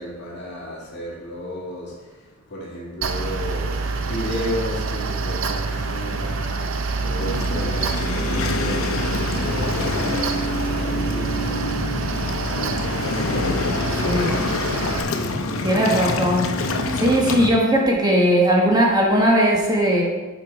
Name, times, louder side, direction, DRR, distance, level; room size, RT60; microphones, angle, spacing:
voice 1, 0.0-15.7, left 1 dB, 55° left, -5 dB, 1.9 m, -34 dB
Mechanical fan, 3.0-15.0, right 4 dB, 65° right, 0.6 m, -27 dB
Waves surf, 7.2-17.5, left 2 dB, 70° left, 0.7 m, -26 dB
voice 2, 13.9-14.4 15.6-20.0, equal, 20° right, -2 dB, 1.1 m, -19 dB
7.7 x 4.6 x 4.9 m, 1.2 s
head